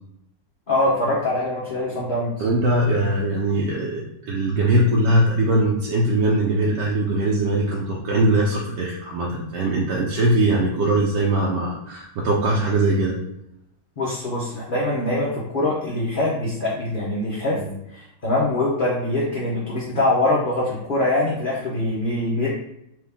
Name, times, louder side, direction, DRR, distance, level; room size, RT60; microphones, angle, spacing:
voice 1, 0.7-2.5 14.0-17.6 17.9-22.5, left 1 dB, 45° left, -6 dB, 0.6 m, -23 dB
voice 2, 2.4-13.2 17.6-17.7, right 1 dB, 75° right, -3 dB, 1.2 m, -21 dB
4.7 x 2.5 x 3.4 m, 0.81 s
omnidirectional pair, 2.0 m